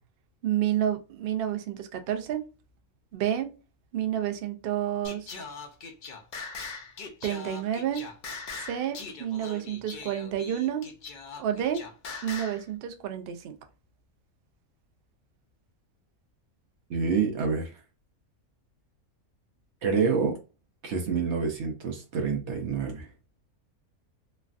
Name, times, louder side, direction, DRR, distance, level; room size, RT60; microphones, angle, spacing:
voice 1, 0.4-2.5 3.1-3.5 3.9-5.3 7.2-8.1 8.7-10.9 11.4-11.8 12.2-13.6, right 10 dB, 85° right, 0.5 m, -30 dB
Singing, 5.0-12.6, left 4 dB, 85° left, 0.4 m, -41 dB
voice 2, 16.9-17.7 19.8-20.4 20.8-23.1, right 5 dB, 60° right, 0.9 m, -27 dB
3.1 x 2.3 x 2.4 m
omnidirectional pair, 1.5 m